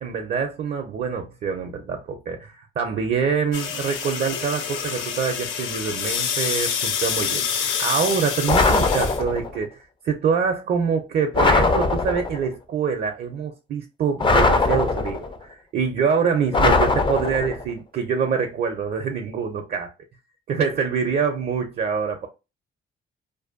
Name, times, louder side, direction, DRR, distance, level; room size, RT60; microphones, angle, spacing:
voice 1, 0.0-19.9 20.5-22.3, right 6 dB, 50° right, 0.5 m, -25 dB
sound 1, 3.5-9.2, left 7 dB, 85° left, 0.5 m, -27 dB
sound 2, 8.5-9.6 11.3-12.5 14.2-15.4 16.5-17.7, left 3 dB, 25° left, 0.4 m, -20 dB
2.6 x 2.2 x 2.4 m
cardioid pair, 90°, 20 cm